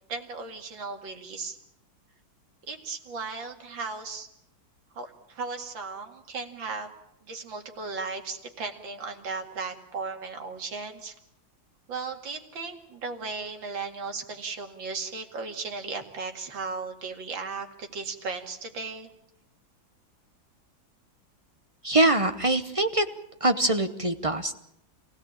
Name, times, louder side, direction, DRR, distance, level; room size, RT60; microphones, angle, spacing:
voice 1, 0.1-1.6 2.7-4.3 4.9-6.9 7.3-11.1 11.9-19.1, right 4 dB, 85° right, 4 dB, 3.0 m, -36 dB
voice 2, 21.8-23.0 23.4-24.5, right 2 dB, 30° right, 8 dB, 0.7 m, -23 dB
27.0 x 17.0 x 8.8 m, 0.80 s
omnidirectional pair, 2.0 m